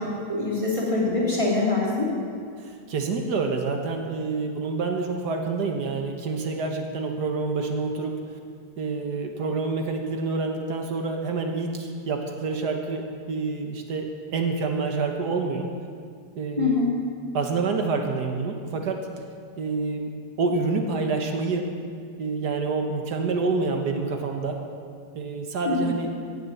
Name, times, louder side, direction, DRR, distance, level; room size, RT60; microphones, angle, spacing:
voice 1, 0.3-2.1 16.6-16.9 25.6-25.7, left 3 dB, 20° left, -6 dB, 3.3 m, -24 dB
voice 2, 2.6-8.2 8.8-15.7 16.4-16.9 17.3-19.0 19.6-20.1 20.4-21.7 22.2-24.6 25.2-26.1, right 4 dB, 75° right, 3 dB, 1.7 m, -27 dB
17.5 x 6.7 x 7.2 m, 2.2 s
omnidirectional pair, 1.8 m